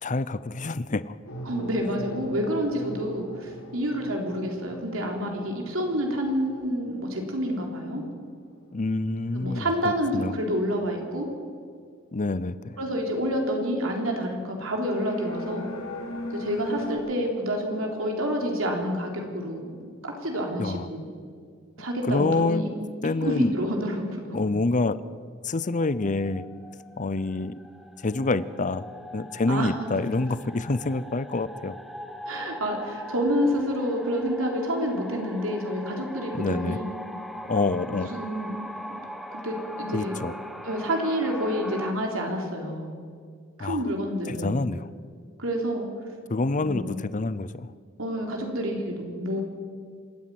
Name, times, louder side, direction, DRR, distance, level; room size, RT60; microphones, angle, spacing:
voice 1, 0.0-1.2 8.7-10.4 12.1-12.8 20.6-20.9 22.1-22.6 23.0-23.6 24.3-25.0 25.4-26.4 27.0-27.5 28.0-31.8 36.3-36.8 37.5-38.1 39.9-40.3 43.6-43.8 44.3-44.9 46.3-47.7, left 3 dB, 35° left, 16 dB, 0.7 m, -27 dB
sound 1, 1.3-7.7 8.4-8.6 14.6-17.0, left 1 dB, 80° left, 5.0 m, -39 dB
voice 2, 1.5-8.0 9.3-11.3 12.8-15.7 16.3-21.1 21.8-22.7 23.2-24.0 24.3-24.4 29.5-29.7 32.3-36.9 37.9-38.6 39.3-40.2 40.6-42.9 43.6-44.6 45.4-45.9 46.5-47.0 48.0-49.4, equal, 75° right, 2 dB, 3.6 m, -28 dB
sound 2, 25.6-41.9, equal, ahead, 1.3 m, -41 dB
26.5 x 10.5 x 9.4 m, 2.1 s
head